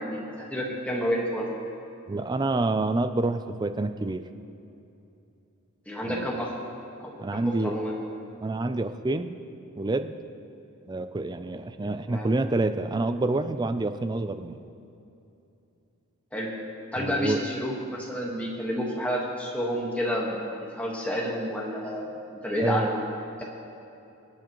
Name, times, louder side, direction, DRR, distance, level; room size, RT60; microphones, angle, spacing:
voice 1, 0.0-1.5 5.9-6.5 7.0-7.9 12.1-12.3 16.3-16.5 16.9-20.4 20.7-23.0, equal, 5° left, -3 dB, 1.4 m, -30 dB
voice 2, 2.1-4.3 6.0-6.3 7.2-7.7 8.4-9.4 9.8-10.1 10.9-14.6 17.0-17.4 22.6-22.9, right 2 dB, 20° right, 10 dB, 0.3 m, -27 dB
24.5 x 8.4 x 3.0 m, 2.8 s
head